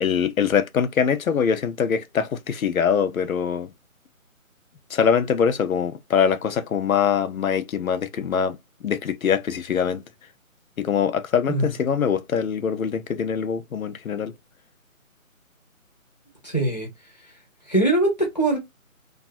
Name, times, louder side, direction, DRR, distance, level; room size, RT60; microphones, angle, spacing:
voice 1, 0.0-3.7 4.9-8.6 8.8-10.0 10.8-14.3, left 7 dB, 70° left, 0.5 m, -23 dB
voice 2, 16.4-16.9 17.7-18.6, right 2 dB, 30° left, 0.6 m, -21 dB
2.6 x 2.3 x 2.3 m
figure-of-eight pair, 155°, 43 cm